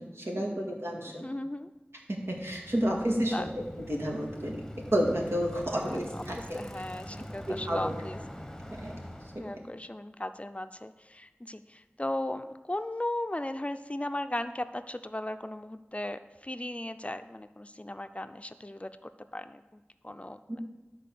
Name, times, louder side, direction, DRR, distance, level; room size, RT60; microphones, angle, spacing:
voice 1, 0.0-1.3 2.1-3.5 3.8-4.6 4.9-6.6 7.5-8.0 8.7-8.9 9.3-9.6 20.5-20.6, equal, 75° right, -1 dB, 1.9 m, -31 dB
voice 2, 1.1-1.7 2.9-3.0 3.3-3.5 5.7-6.2 6.5-8.2 9.4-20.6, left 1 dB, 30° left, 9 dB, 0.5 m, -37 dB
Bicycle, 2.2-9.7, left 1 dB, 10° left, 1.1 m, -44 dB
11.5 x 4.1 x 6.9 m, 1.1 s
wide cardioid pair, 40°, 4 cm